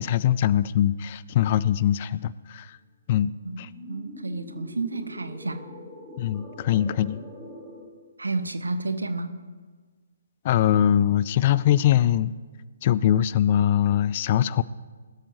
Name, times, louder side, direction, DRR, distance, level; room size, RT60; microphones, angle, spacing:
voice 1, 0.0-2.8 3.1-3.7 6.2-7.2 10.4-12.3 12.8-14.6, left 11 dB, 35° left, 19 dB, 0.3 m, -22 dB
sound 1, 3.5-7.9, left 1 dB, 5° left, 2.2 m, -44 dB
voice 2, 3.9-5.7 8.2-9.3, right 3 dB, 75° right, 10 dB, 1.0 m, -30 dB
20.5 x 13.0 x 2.7 m, 1.4 s
figure-of-eight pair, 130°, 0 cm